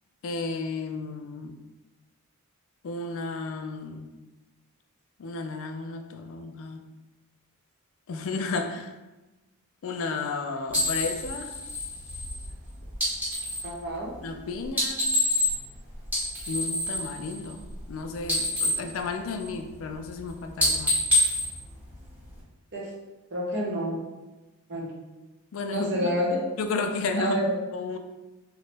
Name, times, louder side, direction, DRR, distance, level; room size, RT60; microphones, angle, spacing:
voice 1, 0.2-1.5 2.8-4.1 5.2-6.8 8.1-8.9 9.8-11.5 14.2-15.1 16.5-17.6 17.9-21.0 25.5-26.0 26.6-28.0, left 3 dB, 60° left, 6 dB, 0.3 m, -33 dB
sound 1, 10.7-13.7 14.6-15.7 16.0-17.9 18.2-19.7 20.1-20.3 20.6-22.4, left 1 dB, 10° right, 1.1 m, -27 dB
voice 2, 13.6-14.1 22.7-22.9 23.3-24.0 24.7-25.0 25.7-26.4 27.1-27.5, equal, 50° right, -3 dB, 0.7 m, -28 dB
2.9 x 2.0 x 3.2 m, 1.1 s
head